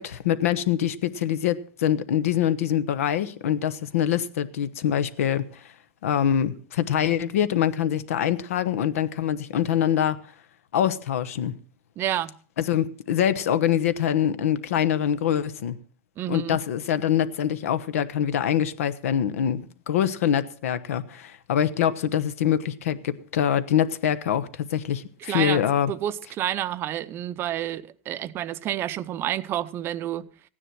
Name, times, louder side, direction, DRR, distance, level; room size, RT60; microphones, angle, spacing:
voice 1, 0.0-5.4 6.0-10.2 10.7-11.5 12.6-15.8 16.3-25.9, left 10 dB, 90° left, 1.0 m, -24 dB
voice 2, 12.0-12.3 16.2-16.6 25.3-25.6 25.9-30.3, right 12 dB, 30° right, 0.6 m, -29 dB
15.5 x 10.0 x 5.9 m
supercardioid pair, 145°, 8 cm